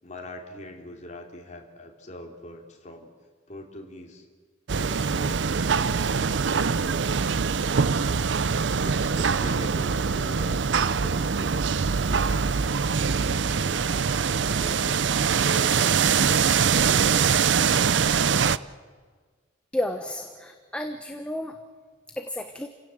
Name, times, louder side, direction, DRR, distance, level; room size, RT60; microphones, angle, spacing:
voice 1, 0.0-3.1 3.5-4.2 4.8-5.4 5.8-7.7 8.8-12.6 12.9-15.0 15.4-16.0, left 1 dB, 40° left, 2 dB, 3.3 m, -43 dB
sound 1, 4.7-18.6, right 6 dB, 70° right, 0.6 m, -23 dB
voice 2, 19.7-21.6 22.2-22.7, left 1 dB, 5° left, 6 dB, 1.2 m, -32 dB
29.0 x 17.0 x 7.7 m, 1.5 s
head